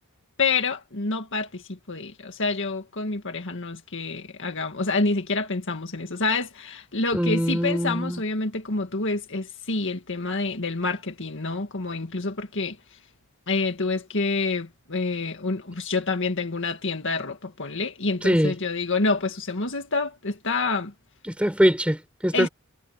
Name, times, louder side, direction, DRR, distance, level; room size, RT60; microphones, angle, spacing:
voice 1, 0.4-12.8 13.5-20.9 22.3-22.5, left 3 dB, 60° left, 2.0 m, -27 dB
voice 2, 7.1-8.2 18.2-18.5 21.3-22.5, equal, 5° right, 5.6 m, -22 dB
head